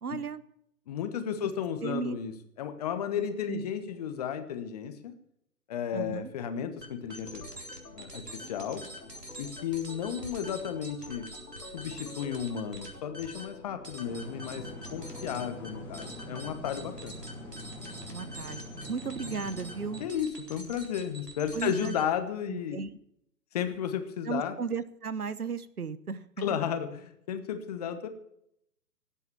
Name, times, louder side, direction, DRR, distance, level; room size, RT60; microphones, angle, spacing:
voice 1, 0.0-0.4 1.4-1.5 1.8-2.2 3.2-3.7 5.9-6.3 18.1-18.6 18.9-20.0 21.5-22.0 22.5-22.9 24.2-26.6, right 5 dB, 70° right, 17 dB, 1.1 m, -35 dB
voice 2, 0.9-2.3 2.6-5.1 5.7-7.5 7.9-8.8 9.4-11.3 11.7-14.7 14.9-17.2 20.0-22.8 23.5-24.6 26.4-28.1, left 8 dB, 25° left, 9 dB, 1.2 m, -33 dB
sound 1, 6.8-22.2, right 1 dB, 90° right, 4.1 m, -45 dB
Organ, 7.3-16.6, left 3 dB, 70° left, 2.9 m, -50 dB
sound 2, 14.0-20.1, left 1 dB, 5° left, 2.7 m, -44 dB
18.0 x 8.4 x 7.2 m, 0.74 s
figure-of-eight pair, 135°, 47 cm